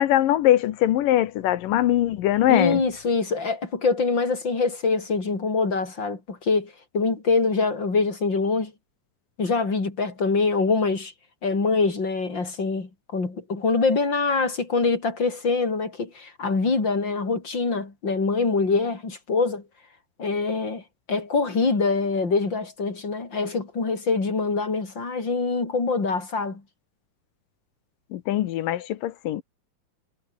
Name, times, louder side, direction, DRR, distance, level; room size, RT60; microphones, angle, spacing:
voice 1, 0.0-2.8 28.1-29.4, left 13 dB, 85° left, 2.9 m, -22 dB
voice 2, 2.5-8.7 9.4-11.1 11.4-19.6 20.2-20.8 21.1-26.6, left 4 dB, 35° left, 5.4 m, -24 dB
omnidirectional pair, 3.8 m